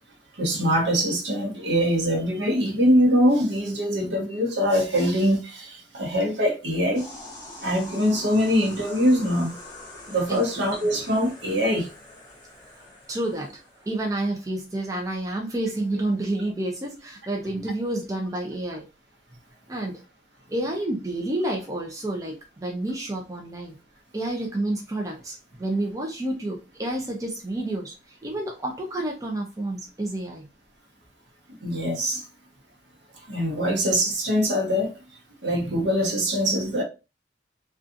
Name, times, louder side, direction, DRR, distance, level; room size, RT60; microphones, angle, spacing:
voice 1, 0.4-7.0 7.6-9.5 10.1-11.9 31.6-32.2 33.3-34.9 35.4-36.8, equal, 70° right, 0.8 m, -23 dB
sound 1, 6.9-13.9, left 2 dB, 25° left, 0.9 m, -43 dB
voice 2, 13.1-18.9 19.7-20.0 20.5-23.8 24.1-30.4, right 1 dB, 20° right, 0.4 m, -29 dB
2.6 x 2.4 x 2.4 m
head